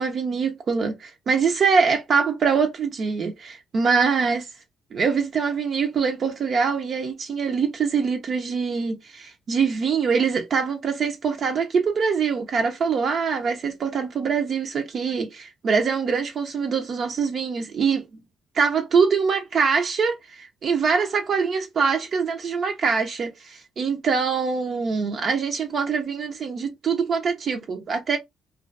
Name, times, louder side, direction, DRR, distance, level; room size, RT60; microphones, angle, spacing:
voice 1, 0.0-4.4 4.9-18.1 18.5-28.2, right 5 dB, 55° right, 0.5 m, -24 dB
2.4 x 2.2 x 2.3 m
cardioid pair, 90°, 0 cm